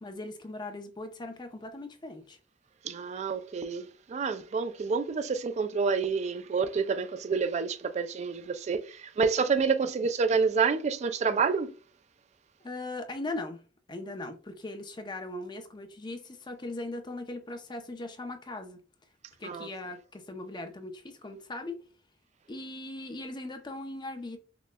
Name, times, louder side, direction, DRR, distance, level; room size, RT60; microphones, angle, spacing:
voice 1, 0.0-2.4 12.6-18.8 19.4-21.8 22.5-24.4, left 2 dB, 25° left, 0.5 m, -39 dB
voice 2, 2.8-11.7 19.4-19.7, right 5 dB, 40° right, 0.3 m, -28 dB
5.9 x 2.1 x 2.2 m
head